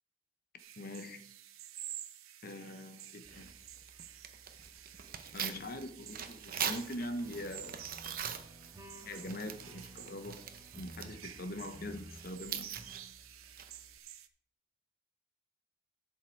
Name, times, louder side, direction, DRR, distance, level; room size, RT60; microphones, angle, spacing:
sound 1, 0.6-14.3, right 11 dB, 85° right, 0.8 m, -51 dB
voice 1, 0.8-1.2 2.4-3.5 5.3-7.8 9.1-10.4 10.7-12.7, left 1 dB, 45° left, 8 dB, 0.9 m, -42 dB
Tearing, 3.2-14.0, right 8 dB, 45° right, 0.8 m, -44 dB
sound 2, 7.2-12.3 12.7-13.1, equal, 15° right, 1.6 m, -53 dB
11.0 x 6.5 x 4.6 m, 0.65 s
head